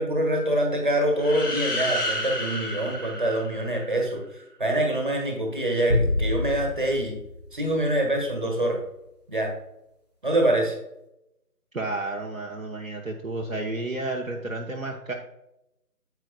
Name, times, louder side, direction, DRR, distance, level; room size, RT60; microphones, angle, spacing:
voice 1, 0.0-4.2 4.6-7.2 7.5-8.8 9.3-9.5 10.2-10.7, right 1 dB, 30° right, 1 dB, 1.5 m, -25 dB
sound 1, 1.1-4.1, equal, 70° left, 2.4 m, -31 dB
sound 2, 5.9-8.4, left 2 dB, 25° left, 1.2 m, -28 dB
voice 2, 11.7-15.1, right 2 dB, 55° right, 1 dB, 1.0 m, -31 dB
9.1 x 8.2 x 2.2 m, 0.86 s
figure-of-eight pair, 165°, 48 cm